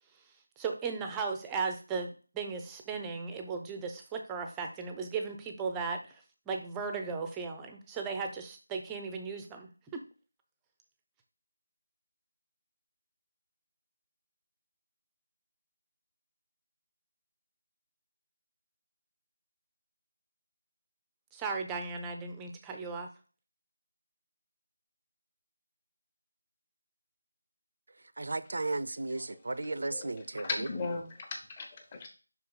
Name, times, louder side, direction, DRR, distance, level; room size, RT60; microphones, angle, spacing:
voice 1, 0.6-10.0 21.3-23.1, right 5 dB, 10° right, 0.6 m, -36 dB
voice 2, 28.2-30.7, right 2 dB, 60° right, 0.5 m, -34 dB
voice 3, 29.7-30.0 30.4-32.1, left 4 dB, 25° left, 1.1 m, -37 dB
5.8 x 4.5 x 3.7 m
figure-of-eight pair, 170°, 0 cm